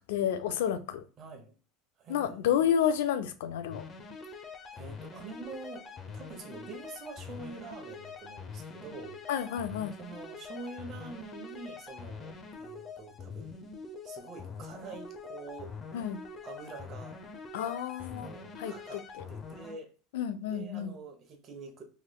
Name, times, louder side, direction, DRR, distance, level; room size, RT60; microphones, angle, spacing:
voice 1, 0.0-1.0 2.1-3.8 9.3-9.9 15.9-16.2 17.5-18.3 18.6-19.0 20.1-20.9, left 9 dB, 80° left, 0.4 m, -30 dB
voice 2, 1.2-1.5 2.0-3.0 4.7-9.2 10.0-13.6 14.0-16.0 16.4-17.2 18.0-19.9 20.5-21.8, right 4 dB, 40° right, 0.9 m, -46 dB
sound 1, 3.7-19.7, left 4 dB, 30° left, 0.6 m, -44 dB
3.0 x 3.0 x 2.2 m
supercardioid pair, 100°, 0 cm